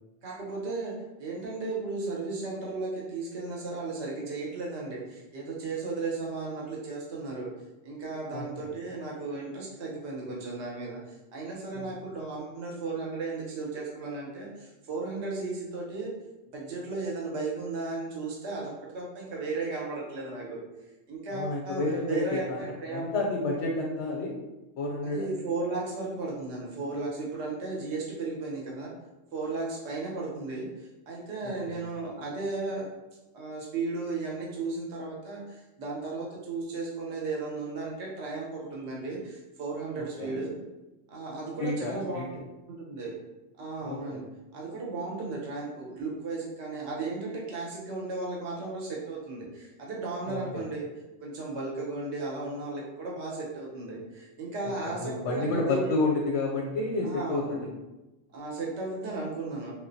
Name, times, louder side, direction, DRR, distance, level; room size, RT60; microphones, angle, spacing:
voice 1, 0.2-7.5 7.8-16.1 16.5-20.6 21.1-23.2 25.0-28.9 29.3-32.9 33.3-40.5 41.1-42.3 42.7-43.1 43.6-44.2 44.5-50.9 51.2-55.9 57.0-57.7 58.3-59.7, right 3 dB, 70° right, -3 dB, 1.1 m, -35 dB
voice 2, 8.3-8.7 11.8-11.9 21.3-22.6 22.9-24.4 24.8-25.3 31.4-31.7 40.0-40.4 41.6-42.3 43.8-44.2 50.3-50.6 54.6-57.6, left 2 dB, 85° left, -1 dB, 0.9 m, -30 dB
3.2 x 2.5 x 2.6 m, 1.0 s
omnidirectional pair, 1.2 m